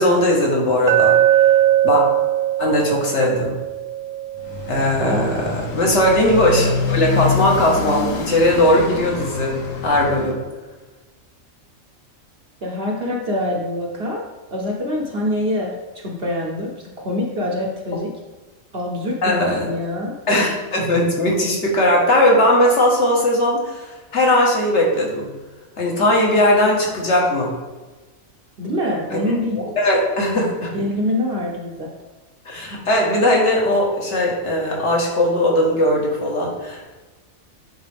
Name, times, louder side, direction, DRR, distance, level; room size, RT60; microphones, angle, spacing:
voice 1, 0.0-1.6 1.8-2.0 2.6-3.6 4.7-9.6 9.8-10.4 17.9-18.0 19.2-19.7 20.3-25.3 25.8-27.5 29.1-29.2 29.6-30.7 32.5-36.9, left 1 dB, 55° left, -2 dB, 1.7 m, -18 dB
Glass, 0.9-5.0, right 12 dB, 75° right, 0.4 m, -19 dB
Motorcycle, 4.3-10.4, left 4 dB, 70° left, 1.2 m, -26 dB
voice 2, 12.6-14.2 14.5-18.1 18.7-20.1 28.6-29.6 30.7-31.9, left 1 dB, 50° right, -2 dB, 1.0 m, -25 dB
9.0 x 4.0 x 3.4 m, 1.2 s
omnidirectional pair, 1.4 m